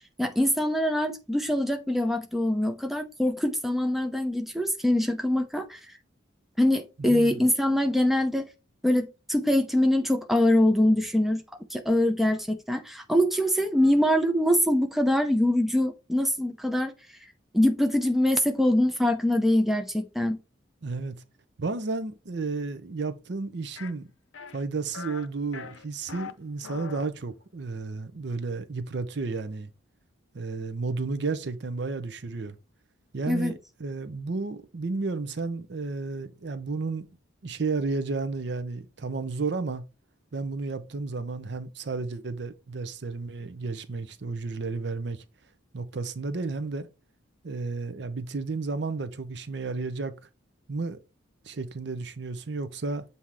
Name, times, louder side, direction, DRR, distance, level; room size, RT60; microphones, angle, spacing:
voice 1, 0.2-6.0 6.6-8.5 8.8-11.4 11.7-16.9 17.5-20.4 33.3-33.5, left 1 dB, ahead, 0.5 m, -24 dB
voice 2, 7.0-7.4 20.8-21.1 21.6-24.1 24.5-29.7 30.3-32.6 33.1-37.1 37.4-39.8 40.3-45.2 45.7-46.9 47.4-50.1 50.7-51.0 51.4-53.0, right 3 dB, 55° right, 0.6 m, -32 dB
sound 1, 23.8-23.9 24.3-24.6 24.9-25.3 25.5-26.3 26.6-27.1, left 6 dB, 80° left, 0.6 m, -41 dB
7.4 x 2.7 x 4.7 m
head